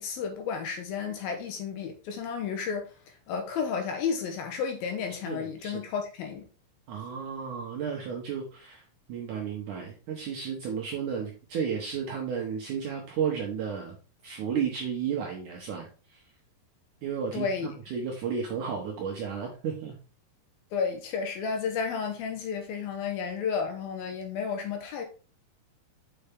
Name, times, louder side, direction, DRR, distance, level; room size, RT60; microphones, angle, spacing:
voice 1, 0.0-2.9 3.3-6.5 17.3-17.7 20.7-25.0, left 6 dB, 75° left, 2.4 m, -32 dB
voice 2, 5.3-5.8 6.9-8.8 9.1-14.0 14.2-16.2 17.0-20.0, right 7 dB, 70° right, 1.9 m, -33 dB
6.7 x 5.5 x 3.6 m
omnidirectional pair, 4.9 m